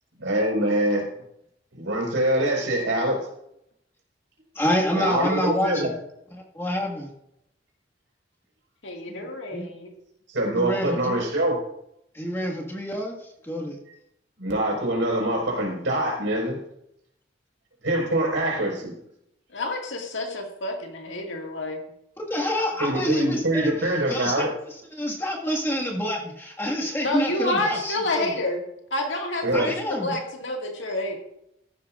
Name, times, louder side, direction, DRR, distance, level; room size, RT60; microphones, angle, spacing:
voice 1, 0.2-1.1 1.7-3.2 4.9-5.9 9.1-9.2 10.3-11.6 14.4-16.6 17.8-18.9 22.8-24.5 29.4-29.7, right 1 dB, 80° right, -1 dB, 5.0 m, -24 dB
voice 2, 4.6-5.9 6.3-7.1 9.5-9.7 10.6-11.2 12.1-13.2 13.4-13.8 22.2-24.5 25.0-28.3 29.5-30.2, equal, 15° left, -2 dB, 1.8 m, -27 dB
voice 3, 8.8-9.9 19.5-21.8 27.0-28.6 28.9-31.2, left 1 dB, 75° left, 2 dB, 2.0 m, -29 dB
15.0 x 11.5 x 2.5 m, 0.78 s
head